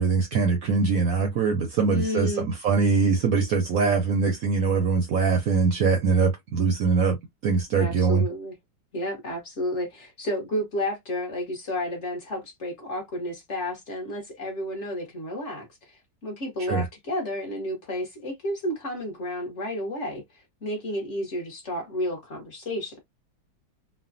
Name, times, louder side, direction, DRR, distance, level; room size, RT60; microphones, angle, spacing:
voice 1, 0.0-7.2 7.4-8.2 16.6-16.9, right 5 dB, 70° right, 0.8 m, -22 dB
voice 2, 1.9-2.5 7.8-8.5 8.9-23.0, left 1 dB, 45° left, 1.1 m, -31 dB
3.2 x 2.1 x 2.5 m
omnidirectional pair, 2.0 m